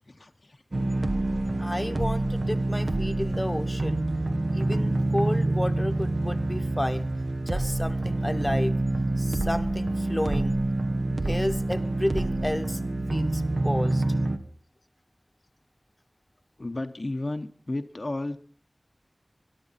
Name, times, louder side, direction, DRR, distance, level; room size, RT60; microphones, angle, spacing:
voice 1, 0.1-0.6 16.6-18.4, left 2 dB, 60° left, 6 dB, 0.8 m, -33 dB
sound 1, 0.7-14.4, right 2 dB, 80° right, 1.1 m, -27 dB
voice 2, 1.6-4.0 4.5-7.1 7.4-8.7 9.2-10.6 11.1-12.8 13.1-14.0, left 1 dB, 20° left, 8 dB, 1.0 m, -31 dB
22.0 x 11.5 x 4.2 m, 0.43 s
wide cardioid pair, 55°, 0 cm